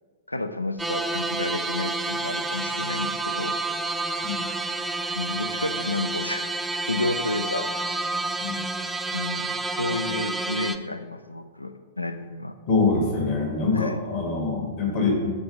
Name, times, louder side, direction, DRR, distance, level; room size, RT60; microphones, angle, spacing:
voice 1, 0.3-3.6 5.1-6.5 6.9-7.7 9.1-12.5 13.7-14.0, left 2 dB, 90° left, 9 dB, 0.4 m, -31 dB
sound 1, 0.8-10.8, right 2 dB, 5° right, 0.3 m, -29 dB
voice 2, 12.7-15.3, left 3 dB, 45° left, -1 dB, 1.8 m, -24 dB
6.0 x 3.8 x 5.3 m, 1.5 s
figure-of-eight pair, 105°, 0 cm